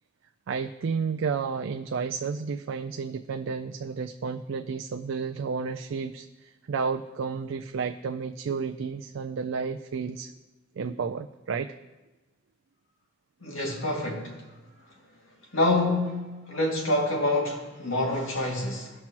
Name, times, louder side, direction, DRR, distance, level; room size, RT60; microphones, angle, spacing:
voice 1, 0.5-10.3 10.8-11.8, right 5 dB, 70° right, 7 dB, 0.4 m, -31 dB
voice 2, 13.4-14.4 15.5-18.9, left 2 dB, 90° left, -1 dB, 2.1 m, -27 dB
17.0 x 5.9 x 2.9 m, 1.1 s
head